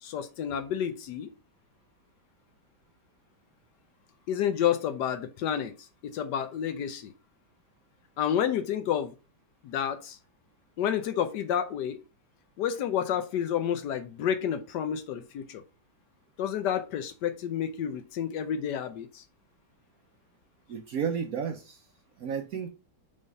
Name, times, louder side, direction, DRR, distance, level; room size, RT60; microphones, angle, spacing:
voice 1, 0.0-1.3 4.3-7.1 8.2-9.1 9.6-10.2 10.8-12.0 12.6-15.6 16.4-19.2, left 9 dB, 70° left, 1.1 m, -30 dB
voice 2, 20.7-21.9 22.2-22.7, right 7 dB, 65° right, 0.9 m, -32 dB
5.4 x 3.4 x 5.3 m
omnidirectional pair, 2.1 m